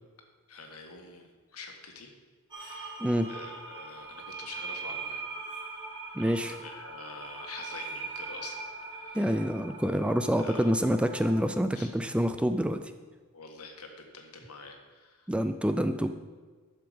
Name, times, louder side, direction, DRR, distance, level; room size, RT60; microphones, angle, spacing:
voice 1, 0.5-2.1 2.6-3.0 3.3-5.2 6.2-8.6 8.9-9.4 10.4-10.7 11.7-11.9 13.3-15.3, left 4 dB, 80° left, 3 dB, 1.6 m, -46 dB
sound 1, 2.5-11.5, right 4 dB, 20° right, 2.2 m, -41 dB
voice 2, 6.2-6.5 9.1-12.8 15.3-16.1, equal, 5° right, 8 dB, 0.4 m, -27 dB
11.0 x 7.0 x 5.1 m, 1.4 s
head